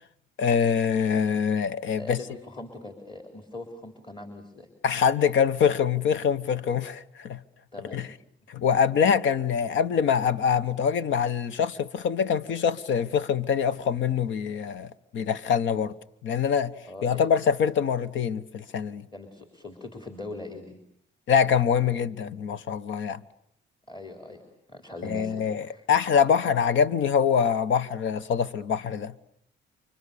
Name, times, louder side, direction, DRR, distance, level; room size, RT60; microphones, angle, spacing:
voice 1, 0.4-2.2 4.8-7.4 7.9-8.1 8.5-15.9 16.2-16.7 17.0-19.1 21.3-23.2 25.0-29.1, left 7 dB, 70° left, 1.1 m, -24 dB
voice 2, 2.0-4.7 7.7-8.0 16.8-17.3 19.1-20.8 23.9-25.9, left 2 dB, 25° left, 3.8 m, -41 dB
29.5 x 25.0 x 6.9 m
cardioid pair, 90°, 20 cm